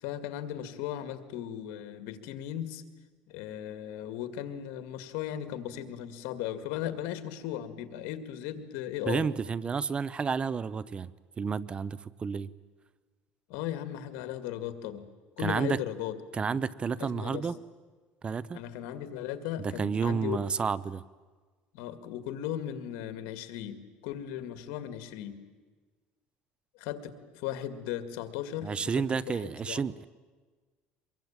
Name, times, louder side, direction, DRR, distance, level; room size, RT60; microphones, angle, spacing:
voice 1, 0.0-2.8 3.3-9.3 13.5-15.1 15.4-16.6 17.0-17.5 18.5-20.4 21.7-25.4 26.8-29.8, left 11 dB, 80° left, 10 dB, 2.1 m, -37 dB
voice 2, 9.1-11.1 11.4-12.5 15.4-15.8 16.3-17.6 18.2-18.6 19.6-21.0 28.6-30.1, right 5 dB, 25° right, 19 dB, 0.8 m, -31 dB
24.5 x 22.5 x 8.9 m, 1.4 s
cardioid pair, 120°, 4 cm